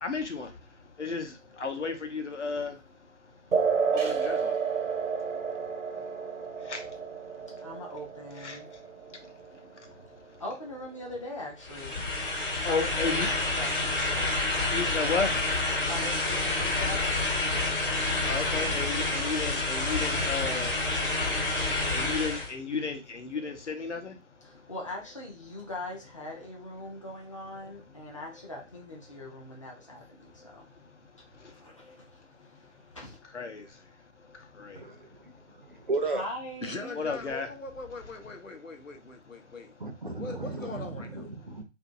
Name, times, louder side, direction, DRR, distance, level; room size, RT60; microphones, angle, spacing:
voice 1, 0.0-0.5 1.0-1.3 1.6-2.7 4.0-4.5 6.7-6.8 8.4-8.6 12.6-13.3 14.7-15.3 18.2-20.7 21.9-24.1 33.3-33.6 34.6-34.8 36.9-37.5, left 4 dB, 65° left, 5 dB, 0.8 m, -32 dB
sound 1, 3.5-10.5, right 6 dB, 80° right, 0.9 m, -31 dB
voice 2, 7.6-8.7 10.4-12.0 12.6-14.0 15.8-17.3 24.4-30.7 31.6-32.2 32.9-33.2 36.0-36.9, left 1 dB, 25° left, -2 dB, 0.5 m, -41 dB
sound 2, 11.6-22.5, left 2 dB, 45° left, 1.2 m, -28 dB
voice 3, 34.8-36.2 39.8-41.6, right 3 dB, 45° right, 5 dB, 0.5 m, -35 dB
voice 4, 36.6-39.7 40.2-41.3, left 3 dB, 90° left, 4 dB, 0.9 m, -41 dB
2.8 x 2.6 x 2.5 m, 0.27 s
figure-of-eight pair, 150°, 38 cm